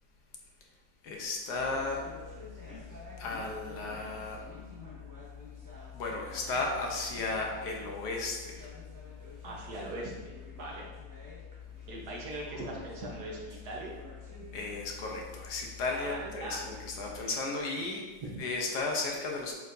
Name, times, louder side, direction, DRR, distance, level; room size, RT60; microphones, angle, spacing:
voice 1, 1.0-2.0 3.2-4.4 5.9-8.7 14.5-18.0 18.4-19.5, left 3 dB, 75° left, 0 dB, 1.5 m, -34 dB
sound 1, 1.5-17.2, left 6 dB, 15° right, 0.9 m, -47 dB
voice 2, 9.4-10.9 11.9-14.0 15.9-16.7 17.2-17.3 18.2-18.4, right 2 dB, 65° right, -2 dB, 1.7 m, -40 dB
7.8 x 4.6 x 2.7 m, 1.4 s
omnidirectional pair, 1.8 m